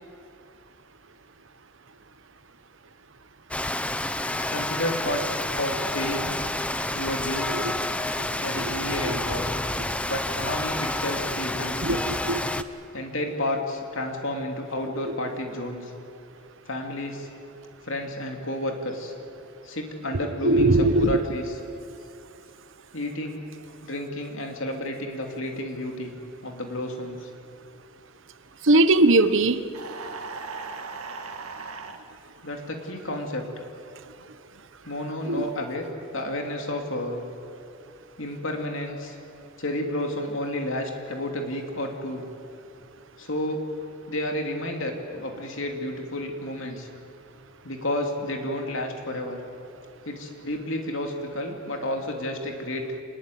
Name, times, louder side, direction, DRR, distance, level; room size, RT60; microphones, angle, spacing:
Rain, 3.5-12.6, left 1 dB, 5° left, 0.7 m, -29 dB
voice 1, 4.2-5.2 5.5-6.4 6.9-7.6 8.4-9.5 10.1-12.0 12.9-15.9 16.7-17.3 17.8-19.1 19.6-21.6 22.9-23.4 23.8-26.2 26.4-27.3 32.4-33.4 34.8-35.9 36.1-37.2 38.2-39.2 39.6-42.2 43.2-43.6 44.1-46.9 47.6-49.4 50.0-52.9, left 1 dB, 60° left, 2 dB, 3.0 m, -31 dB
voice 2, 11.8-12.7 20.4-21.2 28.6-29.6 35.3-35.5, right 2 dB, 60° right, 12 dB, 1.1 m, -20 dB
sound 1, 29.7-32.0, right 4 dB, 85° right, 2.0 m, -37 dB
26.0 x 20.5 x 9.4 m, 2.6 s
head